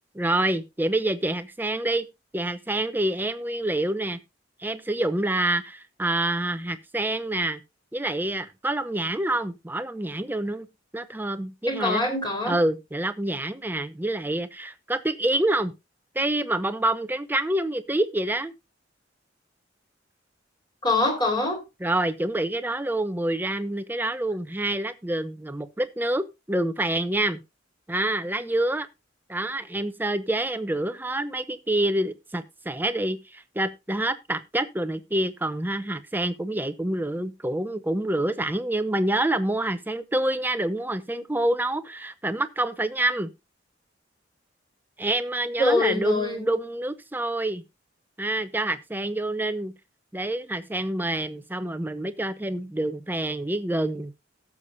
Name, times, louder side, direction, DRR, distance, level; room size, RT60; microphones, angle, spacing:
voice 1, 0.1-2.1 2.3-4.2 4.6-7.6 7.9-10.7 10.9-12.0 12.4-15.7 16.1-18.5 21.8-27.4 27.9-28.9 29.3-43.3 45.0-47.6 48.2-49.7 50.1-54.1, right 1 dB, 10° right, 0.7 m, -27 dB
voice 2, 11.7-12.6 20.8-21.6 45.6-46.4, left 2 dB, 25° left, 4.4 m, -24 dB
17.0 x 7.2 x 2.7 m
head